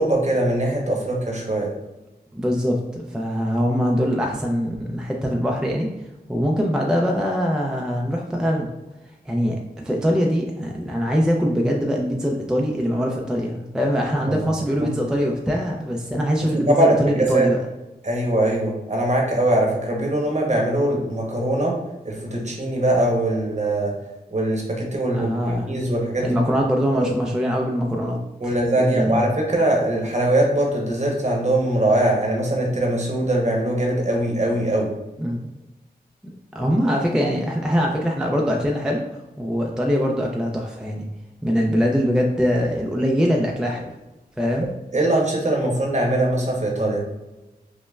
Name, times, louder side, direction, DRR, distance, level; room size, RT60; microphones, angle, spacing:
voice 1, 0.0-1.7 14.3-14.5 14.8-14.9 16.4-17.0 17.3-17.5 18.0-21.7 22.0-23.9 24.3-25.3 25.7-26.4 26.9-27.1 28.4-34.9 44.9-47.0, right 1 dB, 45° right, -1 dB, 0.9 m, -21 dB
voice 2, 2.3-5.9 6.3-8.7 9.3-17.6 25.1-25.7 26.2-29.3 35.2-35.5 36.5-41.1 41.4-43.9 44.4-44.7, equal, 5° right, 0 dB, 0.4 m, -23 dB
5.2 x 2.1 x 2.3 m, 1.0 s
wide cardioid pair, 75°, 17 cm